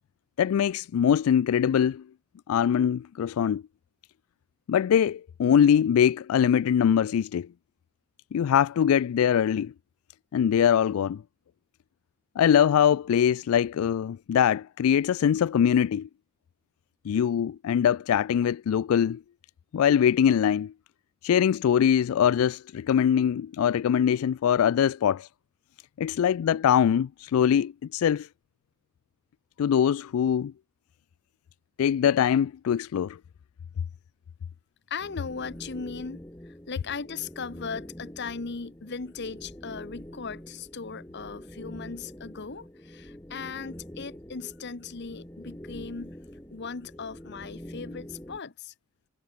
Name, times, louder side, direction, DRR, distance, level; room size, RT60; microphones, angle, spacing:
voice 1, 0.4-2.0 2.5-3.6 4.7-7.5 8.3-9.7 10.3-11.2 12.4-16.1 17.1-19.2 19.7-20.7 21.2-25.3 26.0-28.3 29.6-30.5 31.8-33.2, left 8 dB, 90° left, 0.3 m, -23 dB
voice 2, 34.9-46.1 46.5-48.7, left 5 dB, 55° left, 0.9 m, -38 dB
sound 1, 35.0-48.4, equal, 10° left, 1.9 m, -45 dB
head